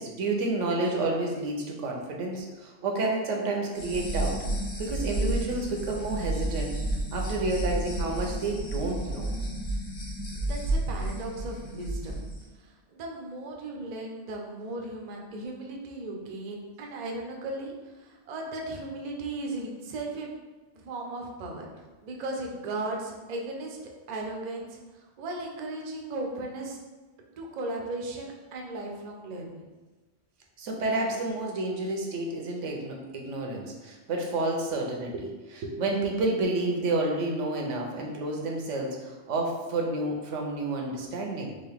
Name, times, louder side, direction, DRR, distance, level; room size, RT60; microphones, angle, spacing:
voice 1, 0.0-4.4 4.8-9.3 30.6-41.6, right 2 dB, 85° right, 1 dB, 1.0 m, -30 dB
sound 1, 3.7-12.4, right 1 dB, 50° left, 0.8 m, -31 dB
voice 2, 10.4-12.2 12.6-20.3 20.7-21.7 22.0-23.8 24.1-26.8 27.4-29.7, right 2 dB, 50° right, 0 dB, 0.5 m, -36 dB
3.7 x 2.5 x 3.4 m, 1.2 s
omnidirectional pair, 1.2 m